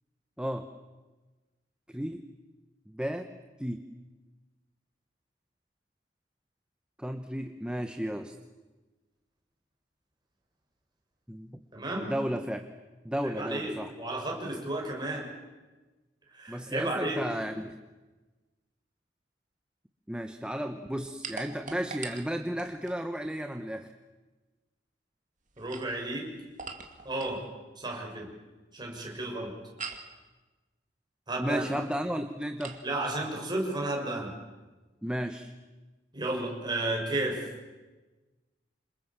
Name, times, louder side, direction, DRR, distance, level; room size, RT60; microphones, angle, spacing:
voice 1, 0.4-0.7 1.9-2.2 2.9-3.3 3.6-3.8 7.0-8.3 11.3-11.5 12.0-12.7 13.0-13.9 16.5-17.8 20.1-23.9 31.4-32.8 35.0-35.5, equal, 5° right, 6 dB, 1.1 m, -33 dB
voice 2, 11.7-12.1 13.3-15.2 16.3-17.2 25.6-26.3 27.0-27.4 27.8-28.3 28.7-29.5 31.3-31.6 32.8-34.3 36.1-37.4, right 2 dB, 25° right, 0 dB, 6.6 m, -32 dB
sound 1, 21.2-23.0 25.5-27.4 29.8-30.2 32.6-32.9, right 5 dB, 45° right, 2.4 m, -42 dB
27.5 x 27.0 x 7.5 m, 1.2 s
head